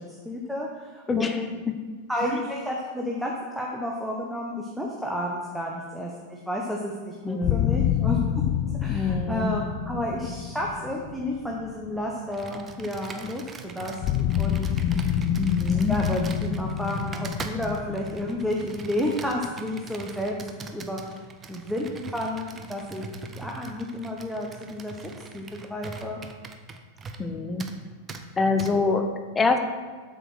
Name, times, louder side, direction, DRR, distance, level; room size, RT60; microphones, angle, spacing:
voice 1, 0.0-1.5 2.1-8.4 8.8-14.7 15.9-21.2 21.5-23.0 23.3-25.0 25.3-26.2, left 1 dB, ahead, -2 dB, 1.1 m, -31 dB
voice 2, 1.1-1.7 2.2-2.4 7.2-7.8 8.9-9.5 15.4-16.0 27.2-27.6 28.4-29.6, left 4 dB, 15° left, 6 dB, 0.8 m, -26 dB
sound 1, 7.4-12.4 14.0-19.7, left 10 dB, 40° left, 0.5 m, -28 dB
Computer keyboard, 12.3-27.3 27.6-27.8 28.1-28.2 28.6-28.7, right 4 dB, 20° right, 0.8 m, -41 dB
7.9 x 6.5 x 6.2 m, 1.5 s
figure-of-eight pair, 90°, 0 cm